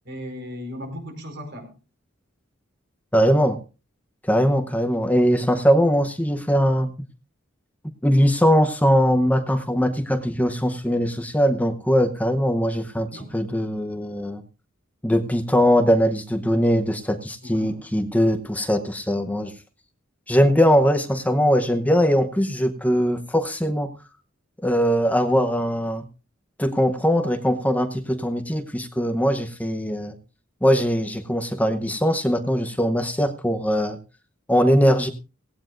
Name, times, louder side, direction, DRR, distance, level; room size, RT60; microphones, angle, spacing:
voice 1, 0.0-1.7 13.1-13.3 17.4-17.8, equal, 60° right, 5 dB, 4.6 m, -36 dB
voice 2, 3.1-3.6 4.2-7.1 8.0-14.4 15.0-19.5 20.3-23.9 24.6-26.0 26.6-30.1 30.6-34.0 34.5-35.1, equal, 10° left, 7 dB, 0.8 m, -21 dB
17.5 x 17.0 x 2.5 m, 0.33 s
head